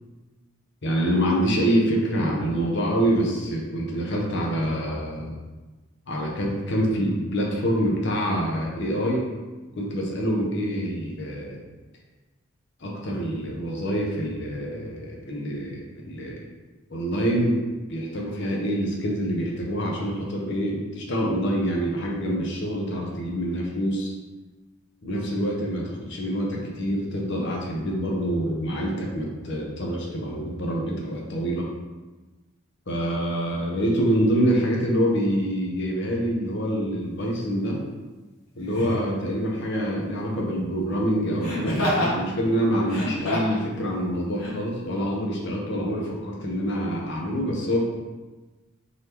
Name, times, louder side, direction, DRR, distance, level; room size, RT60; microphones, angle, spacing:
voice 1, 0.8-5.4 6.1-9.2 9.7-11.6 12.8-16.4 16.9-17.6 17.9-24.1 25.0-31.7 32.9-37.8 38.5-47.8, equal, 55° left, -2 dB, 0.8 m, -26 dB
Laughter, 37.2-37.4 38.7-39.1 41.4-42.2 42.8-43.6 44.4-44.5, left 1 dB, 90° left, 1.2 m, -27 dB
3.9 x 2.9 x 3.3 m, 1.2 s
head